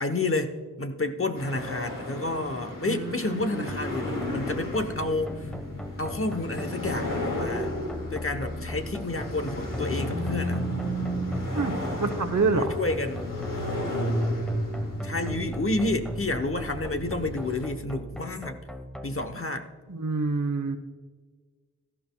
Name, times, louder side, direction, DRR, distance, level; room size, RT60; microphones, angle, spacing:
voice 1, 0.0-5.5 6.0-7.7 8.1-10.7 12.5-13.3 15.0-18.6 19.0-19.7, left 2 dB, 45° left, 8 dB, 0.9 m, -30 dB
sound 1, 1.4-17.6, equal, 90° left, 2.5 m, -33 dB
voice 2, 2.9-3.6 11.5-11.7 12.0-12.8 19.9-20.8, right 4 dB, 70° right, 9 dB, 1.0 m, -27 dB
sound 2, 3.7-19.3, equal, ahead, 1.1 m, -39 dB
17.0 x 13.0 x 2.2 m, 1.5 s
wide cardioid pair, 60°, 32 cm